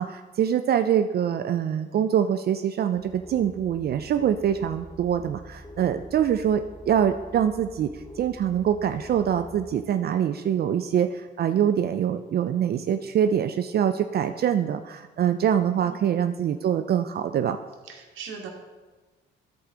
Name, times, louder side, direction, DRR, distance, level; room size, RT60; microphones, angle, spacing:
voice 1, 0.0-7.9 8.2-17.6, right 9 dB, 55° right, 9 dB, 0.4 m, -24 dB
sound 1, 2.9-9.8, left 1 dB, 20° left, 0.9 m, -45 dB
voice 2, 15.8-16.1 17.8-18.5, right 6 dB, 80° right, 0 dB, 1.6 m, -40 dB
13.0 x 4.8 x 3.8 m, 1.3 s
cardioid pair, 90°, 20 cm